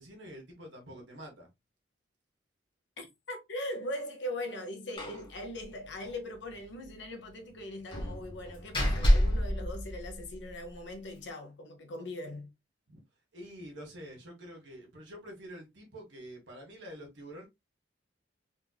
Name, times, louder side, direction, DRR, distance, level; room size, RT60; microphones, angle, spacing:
voice 1, 0.0-1.5 12.9-13.0 13.3-17.5, equal, 75° right, 1.5 m, -47 dB
voice 2, 3.0-12.5, left 1 dB, 70° left, 0.9 m, -40 dB
Slam, 5.0-5.3 5.6-5.7 6.0-6.1 7.9-10.5, equal, 25° left, 1.1 m, -28 dB
3.7 x 3.0 x 2.2 m
head